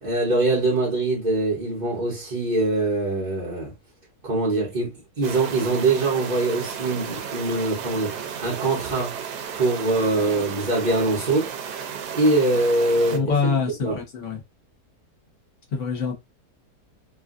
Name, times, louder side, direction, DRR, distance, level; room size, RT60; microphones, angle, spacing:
voice 1, 0.0-3.7 4.2-9.2 9.5-11.5 12.1-13.5 13.8-14.0, right 2 dB, 35° right, 0.9 m, -23 dB
sound 1, 5.2-13.2, right 7 dB, 80° right, 1.2 m, -34 dB
voice 2, 13.1-14.4 15.7-16.2, left 5 dB, 50° left, 1.4 m, -25 dB
3.1 x 2.4 x 2.4 m
omnidirectional pair, 1.7 m